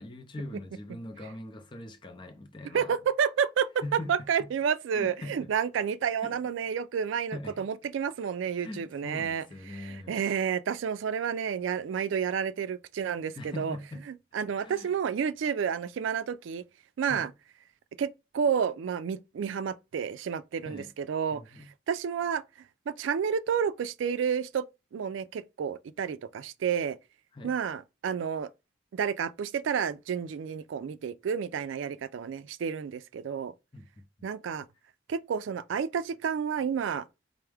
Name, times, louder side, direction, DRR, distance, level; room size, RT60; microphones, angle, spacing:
voice 1, 0.0-3.0 3.8-4.5 4.9-5.5 6.2-6.4 7.3-7.7 8.6-10.2 13.4-14.1 14.6-14.9 17.1-17.3 20.6-20.9 21.3-21.7 27.3-27.6 33.7-34.0, left 1 dB, 25° left, 0.5 m, -42 dB
voice 2, 2.7-13.8 14.1-16.6 17.0-17.3 18.0-21.4 21.9-22.4 22.9-24.6 24.9-27.0 27.4-28.5 28.9-33.5 34.2-34.7 35.1-37.1, right 7 dB, 90° right, 0.3 m, -30 dB
4.5 x 2.1 x 3.4 m
head